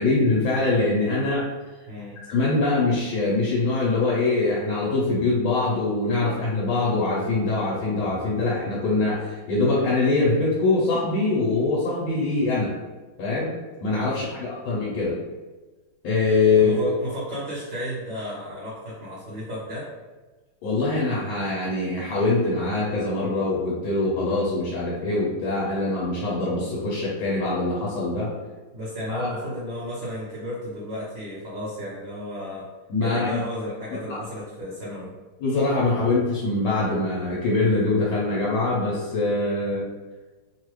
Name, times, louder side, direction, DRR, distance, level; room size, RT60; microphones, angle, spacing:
voice 1, 0.0-1.5 2.3-12.7 13.2-13.5 13.8-15.2 16.0-16.7 20.6-28.3 29.1-29.3 32.9-33.4 34.1-34.2 35.4-39.9, left 3 dB, 70° left, -6 dB, 1.5 m, -23 dB
voice 2, 1.9-2.2 14.1-14.6 16.6-19.9 28.7-32.7 33.0-35.1, equal, 60° right, -9 dB, 1.4 m, -33 dB
3.5 x 2.4 x 3.0 m, 1.2 s
omnidirectional pair, 2.3 m